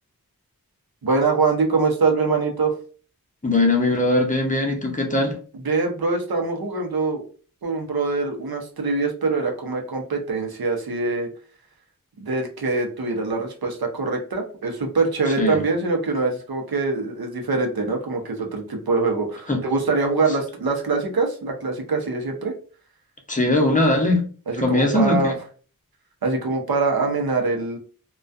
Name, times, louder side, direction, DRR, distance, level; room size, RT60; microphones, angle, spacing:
voice 1, 1.0-2.7 5.6-7.2 7.6-11.3 12.2-22.5 24.5-25.3 26.2-27.8, right 3 dB, 90° right, 2 dB, 0.7 m, -23 dB
voice 2, 3.4-5.4 15.4-15.6 19.5-19.6 23.3-24.2 24.6-25.3, left 2 dB, 20° left, 1 dB, 0.7 m, -20 dB
2.3 x 2.2 x 2.5 m, 0.40 s
wide cardioid pair, 55°, 35 cm